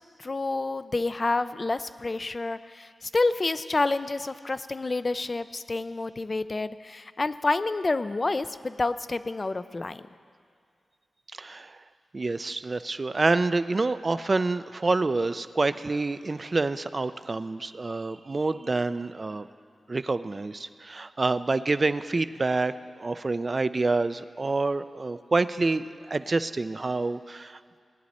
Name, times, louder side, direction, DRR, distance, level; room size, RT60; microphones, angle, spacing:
voice 1, 0.2-10.1, left 3 dB, 35° left, 13 dB, 0.4 m, -28 dB
voice 2, 11.4-11.7 12.1-19.5 19.9-27.6, right 3 dB, 40° right, 13 dB, 0.4 m, -27 dB
18.5 x 10.5 x 4.2 m, 2.2 s
wide cardioid pair, 95°, 0 cm